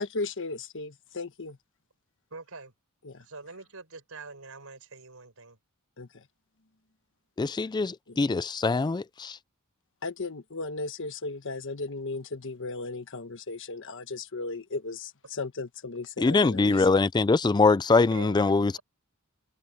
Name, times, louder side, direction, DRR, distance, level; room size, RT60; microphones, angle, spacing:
voice 1, 0.0-1.6 3.0-3.2 6.0-6.2 8.1-8.2 10.0-16.9, left 3 dB, 60° left, 1.3 m, -36 dB
voice 2, 2.3-2.7 3.2-5.6 18.1-18.8, right 3 dB, 70° right, 6.3 m, -45 dB
voice 3, 7.4-9.3 16.2-18.8, left 3 dB, 20° left, 0.3 m, -23 dB
head